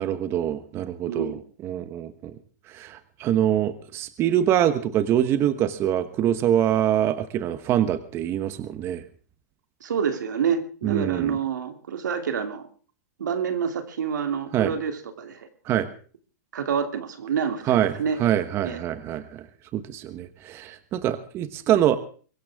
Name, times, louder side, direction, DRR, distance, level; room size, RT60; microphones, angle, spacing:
voice 1, 0.0-1.4 1.6-2.4 2.7-9.0 10.8-11.4 14.5-14.7 15.7-15.9 17.7-19.5 19.7-22.0, right 11 dB, 25° right, 12 dB, 1.2 m, -24 dB
voice 2, 1.1-1.4 9.8-12.6 13.2-15.5 16.5-18.2 18.6-18.8, right 7 dB, 85° right, 6 dB, 2.9 m, -27 dB
23.0 x 16.0 x 3.6 m, 0.40 s
hypercardioid pair, 150°, 10 cm